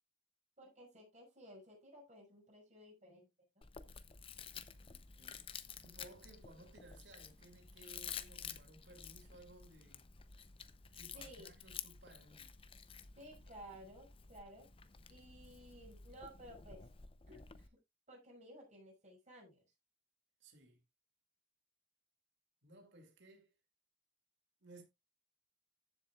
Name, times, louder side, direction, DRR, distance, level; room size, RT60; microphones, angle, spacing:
voice 1, 0.6-3.3 3.6-3.7 11.1-11.5 13.2-14.7 15.1-16.8 17.3-17.8 18.1-19.6, right 1 dB, 35° right, 5.8 m, -56 dB
Chewing mastication, 3.6-17.7, left 7 dB, 30° left, 0.6 m, -52 dB
voice 2, 4.8-5.5 5.8-10.1 10.9-12.5 20.4-20.8 22.6-23.5 24.6-24.8, right 2 dB, 65° right, 2.5 m, -60 dB
14.5 x 7.4 x 2.4 m
head